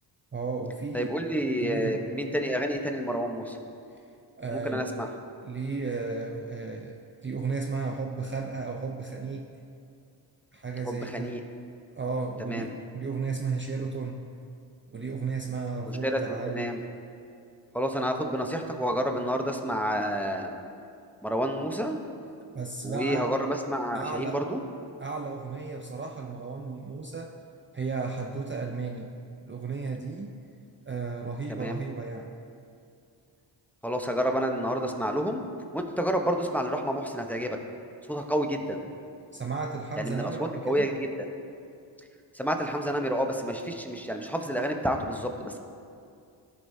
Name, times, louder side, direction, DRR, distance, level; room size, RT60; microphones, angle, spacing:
voice 1, 0.3-1.2 1.6-2.0 4.4-4.9 5.4-7.0 7.2-9.5 10.5-11.4 12.0-14.2 14.9-16.7 22.5-23.3 23.9-24.4 25.0-27.3 27.7-29.1 29.5-30.3 30.9-32.4 39.3-40.9, right 4 dB, 25° right, 2 dB, 0.6 m, -34 dB
voice 2, 0.9-3.6 4.5-5.1 10.8-11.4 12.4-12.7 16.0-16.8 17.7-20.5 21.2-22.0 22.8-24.6 31.5-31.8 33.8-35.5 35.7-37.6 38.1-38.8 40.0-41.3 42.3-45.6, equal, 5° left, 3 dB, 0.8 m, -29 dB
13.5 x 5.3 x 2.7 m, 2.4 s
supercardioid pair, 45°, 50 cm